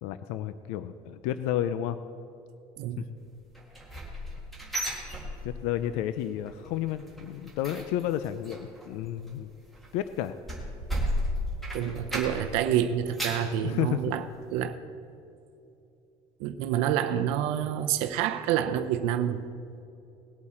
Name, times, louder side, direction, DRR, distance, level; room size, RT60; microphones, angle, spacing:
voice 1, 0.0-2.0 3.0-3.1 5.4-9.5 9.9-10.4 13.6-14.0, left 11 dB, 85° left, 12 dB, 0.5 m, -31 dB
sound 1, 3.5-5.9 6.2-6.5 6.8-12.6 12.9-13.5 14.0-14.1 14.6-14.7, equal, ahead, 1.7 m, -34 dB
voice 2, 11.7-14.2 14.5-14.8 16.4-19.5, right 10 dB, 80° right, 8 dB, 0.6 m, -28 dB
19.0 x 8.5 x 4.3 m, 2.8 s
cardioid pair, 180°, 11 cm